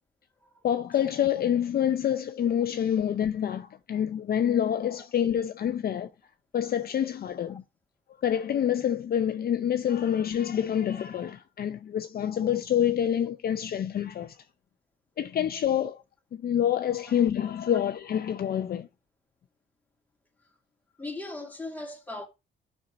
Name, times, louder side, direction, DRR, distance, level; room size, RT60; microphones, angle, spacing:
voice 1, 0.6-6.1 6.5-7.6 8.2-14.4 15.2-16.0 16.3-18.9, left 9 dB, 50° left, 0.6 m, -27 dB
voice 2, 21.0-22.3, left 2 dB, 10° left, 2.3 m, -39 dB
13.0 x 5.5 x 2.6 m
cardioid pair, 90°, 20 cm